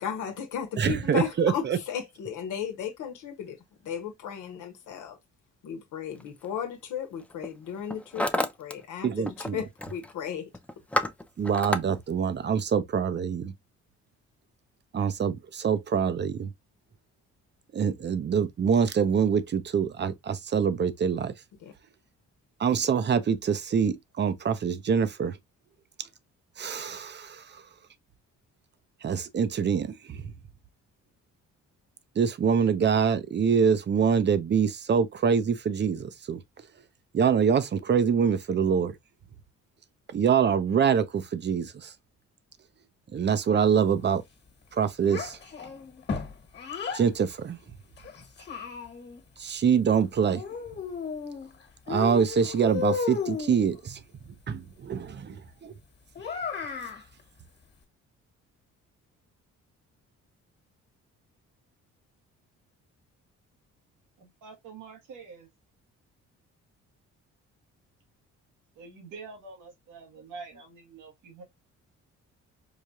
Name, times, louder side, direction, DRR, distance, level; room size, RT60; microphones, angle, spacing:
voice 1, 0.0-5.2 5.6-10.5 11.0-11.1 21.6-21.7, left 8 dB, 80° left, 1.1 m, -35 dB
voice 2, 0.8-1.8 9.0-9.6 11.4-13.5 14.9-16.5 17.7-21.3 22.6-25.4 26.6-27.6 29.0-30.3 32.2-36.4 37.1-38.9 40.1-41.9 43.1-44.2 44.7-45.4 46.9-47.6 49.4-50.4 51.9-54.0 54.5-55.7, right 7 dB, 35° right, 0.6 m, -25 dB
Hammer, 6.2-6.5 7.2-7.5 7.8-8.7 9.0-9.5 9.8-10.1 10.5-11.8, left 1 dB, 5° left, 0.4 m, -30 dB
Child speech kid speaking, 45.1-47.1 48.0-49.2 50.3-51.5 51.9-53.6 56.1-57.0, left 6 dB, 35° left, 1.4 m, -34 dB
voice 3, 64.2-65.5 68.8-71.4, right 4 dB, 90° right, 1.4 m, -46 dB
4.8 x 2.3 x 2.6 m
cardioid pair, 90°, 30 cm